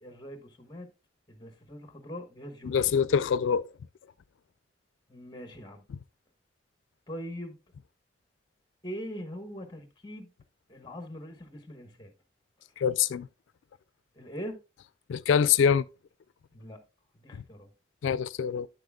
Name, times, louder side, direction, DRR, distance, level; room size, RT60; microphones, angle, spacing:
voice 1, 0.0-0.9 1.3-2.9 5.1-5.8 7.1-7.6 8.8-10.3 10.7-12.1 14.1-14.6 16.5-16.8 17.1-17.7, equal, 20° left, 1.2 m, -42 dB
voice 2, 2.6-3.7 12.8-13.3 15.1-15.8 17.3-17.4 18.0-18.7, left 7 dB, 85° left, 0.3 m, -25 dB
9.6 x 7.7 x 2.3 m
head